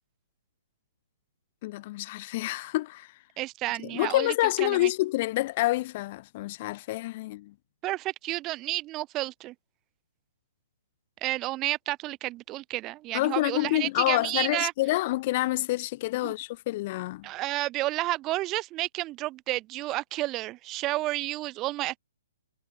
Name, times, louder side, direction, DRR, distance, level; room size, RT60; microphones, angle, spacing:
voice 1, 1.6-3.1 3.8-7.5 13.1-17.3, left 18 dB, 40° left, 5.5 m, -28 dB
voice 2, 3.4-4.3 4.6-4.9 7.8-9.5 11.2-14.7 16.2-16.3 17.2-22.0, right 17 dB, 25° right, 3.9 m, -31 dB
hypercardioid pair, 145°, 0 cm